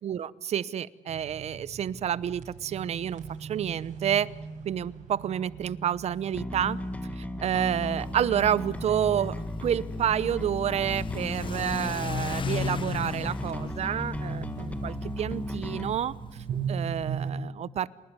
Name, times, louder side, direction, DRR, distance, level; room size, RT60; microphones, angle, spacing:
voice 1, 0.0-4.3 4.6-6.8 7.2-9.3 9.6-16.1 16.7-17.9, right 9 dB, 60° right, 19 dB, 0.8 m, -29 dB
sound 1, 1.1-17.3, right 6 dB, 80° right, 7.3 m, -41 dB
Bass guitar, 6.3-15.9, left 1 dB, 10° left, 1.7 m, -35 dB
Car / Accelerating revving vroom, 7.9-17.3, left 6 dB, 40° left, 1.0 m, -38 dB
27.5 x 20.0 x 9.7 m, 1.1 s
cardioid pair, 110°, 13 cm